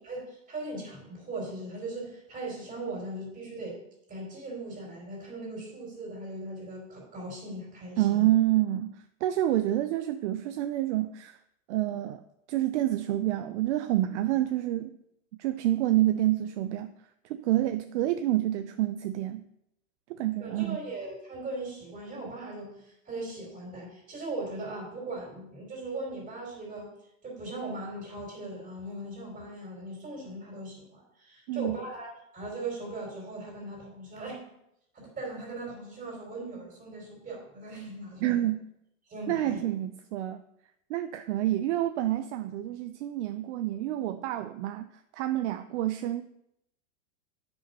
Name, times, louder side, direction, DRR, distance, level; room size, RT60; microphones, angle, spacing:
voice 1, 0.0-3.8 4.1-8.2 20.4-26.9 27.2-34.5 34.9-38.5 39.1-39.6, right 2 dB, 20° right, -1 dB, 3.5 m, -39 dB
voice 2, 8.0-8.9 9.2-11.4 11.7-12.2 12.5-14.9 15.4-16.9 17.2-19.4 20.2-20.8 31.5-31.8 38.2-38.6 39.3-40.4 40.9-44.9 45.1-46.2, right 14 dB, 55° right, 10 dB, 0.5 m, -28 dB
8.8 x 5.5 x 5.4 m, 0.80 s
supercardioid pair, 145°, 41 cm